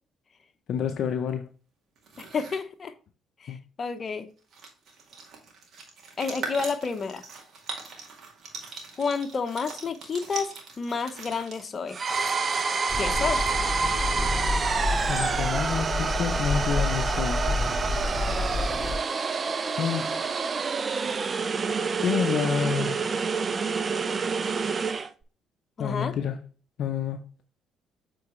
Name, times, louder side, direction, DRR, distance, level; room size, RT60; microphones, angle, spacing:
voice 1, 0.7-1.5 3.5-3.6 15.1-17.4 19.8-20.2 22.0-23.0 25.8-26.4 26.8-27.2, left 7 dB, 65° left, 0.6 m, -28 dB
sound 1, 2.0-2.6 4.1-4.2 4.4-13.9, right 4 dB, 60° right, 2.0 m, -42 dB
voice 2, 2.2-2.9 3.4-4.3 6.2-7.2 9.0-12.0 13.0-13.4 25.8-26.1, left 5 dB, 45° left, 0.9 m, -30 dB
sound 2, 11.9-25.1, right 5 dB, 40° right, 0.6 m, -28 dB
sound 3, 12.9-18.9, left 2 dB, 5° left, 2.0 m, -29 dB
7.8 x 3.9 x 3.1 m
hypercardioid pair, 55°, 0 cm